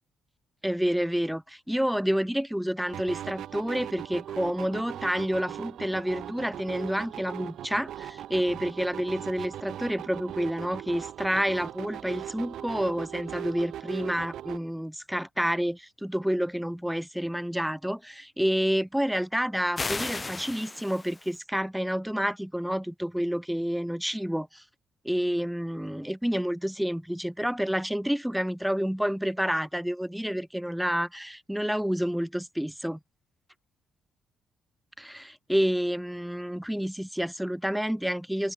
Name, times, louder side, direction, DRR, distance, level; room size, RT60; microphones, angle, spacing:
voice 1, 0.6-24.6 25.0-33.0 35.0-38.5, equal, ahead, 1.6 m, -29 dB
sound 1, 2.9-14.6, right 11 dB, 75° right, 3.4 m, -39 dB
sound 2, 19.8-21.4, left 3 dB, 25° left, 3.9 m, -34 dB
open air
cardioid pair, 90°, 0 cm